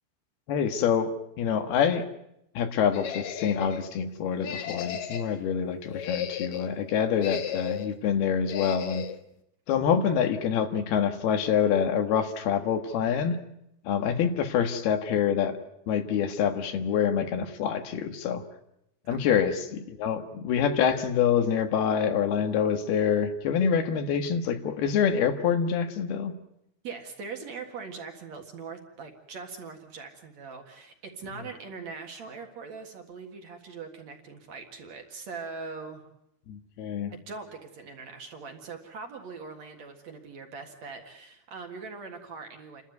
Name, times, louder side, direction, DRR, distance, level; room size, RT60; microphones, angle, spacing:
voice 1, 0.5-1.1 1.4-2.0 2.6-9.1 9.7-13.4 13.9-15.6 15.9-18.4 19.1-26.3 36.5-37.1, left 7 dB, 85° left, 7 dB, 3.5 m, -26 dB
sound 1, 2.9-3.9 4.4-5.4 5.8-6.7 7.2-8.0 8.5-9.2, left 8 dB, 65° left, 1.9 m, -35 dB
voice 2, 26.8-36.0 37.1-42.8, right 4 dB, 55° right, 4 dB, 2.7 m, -41 dB
29.0 x 13.0 x 9.4 m, 0.79 s
omnidirectional pair, 4.4 m